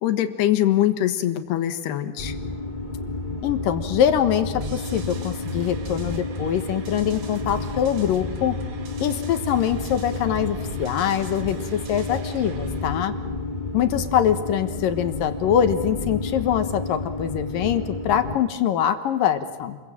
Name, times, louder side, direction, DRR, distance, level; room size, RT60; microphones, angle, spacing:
voice 1, 0.0-2.3, left 12 dB, 85° left, 9 dB, 3.5 m, -23 dB
sound 1, 2.2-18.4, left 3 dB, 25° left, 1.1 m, -31 dB
voice 2, 3.4-8.6 9.0-13.1 13.7-19.8, left 9 dB, 70° left, 10 dB, 2.7 m, -23 dB
sound 2, 4.6-12.6, right 3 dB, 45° right, 3.1 m, -42 dB
sound 3, 4.8-13.0, right 6 dB, 80° right, 4.2 m, -47 dB
29.5 x 22.0 x 8.9 m, 1.4 s
omnidirectional pair, 4.6 m